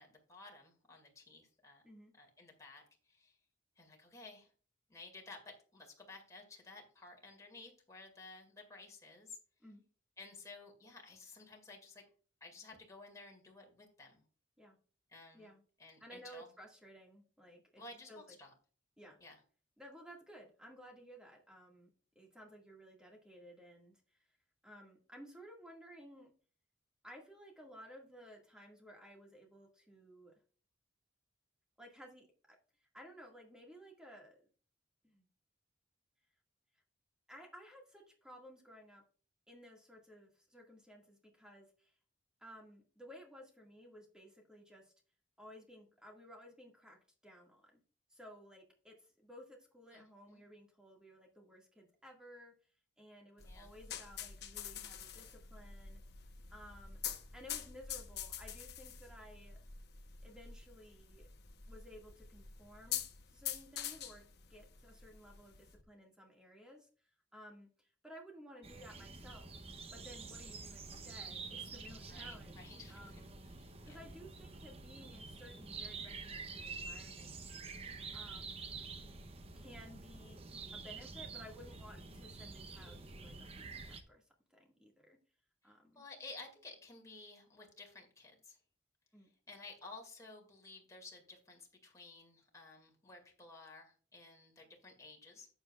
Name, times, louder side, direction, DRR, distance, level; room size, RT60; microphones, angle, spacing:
voice 1, 0.0-1.8 2.1-3.4 3.8-4.5 4.9-9.4 10.2-12.0 12.4-14.2 15.1-15.5 15.8-16.5 17.8-18.5 19.2-19.4 49.9-50.0 50.3-50.4 53.4-53.7 72.1-73.3 73.6-74.1 85.9-88.6 89.5-95.6, left 3 dB, 15° left, 0 dB, 2.3 m, -54 dB
voice 2, 16.0-17.8 18.1-18.4 19.0-19.2 19.8-21.9 22.2-24.2 24.6-26.3 27.0-30.4 31.8-32.3 32.8-34.5 35.0-35.3 37.3-39.0 39.5-41.9 42.4-44.9 45.4-47.0 47.2-47.8 48.1-52.5 53.0-56.0 56.5-57.0 57.3-59.6 60.2-61.3 61.7-63.0 63.3-66.9 67.3-69.5 69.9-73.3 73.8-77.4 78.1-78.7 79.5-80.4 80.7-84.2 84.5-85.2 85.6-86.0 89.1-89.3, equal, 5° right, -1 dB, 2.0 m, -56 dB
sound 1, 53.4-65.8, left 9 dB, 60° left, 1.0 m, -46 dB
sound 2, 68.6-84.0, right 4 dB, 30° right, 0.8 m, -48 dB
11.0 x 8.0 x 2.4 m, 0.41 s
head